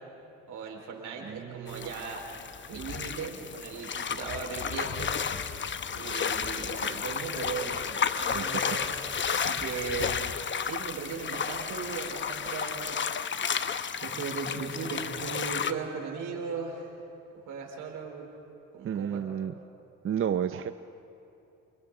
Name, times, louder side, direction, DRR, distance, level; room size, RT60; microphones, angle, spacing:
voice 1, 0.5-2.2 2.7-5.6 5.9-8.9 9.3-10.3 10.6-12.9 14.0-16.9 17.5-18.3 18.7-19.2, right 5 dB, 80° right, 0 dB, 4.6 m, -37 dB
voice 2, 1.2-1.9 8.3-8.6 18.8-19.5 20.0-20.7, right 9 dB, 45° right, 10 dB, 0.6 m, -31 dB
sound 1, 1.7-15.7, left 7 dB, 40° left, 0.8 m, -32 dB
29.0 x 28.5 x 3.9 m, 2.8 s
cardioid pair, 90°, 30 cm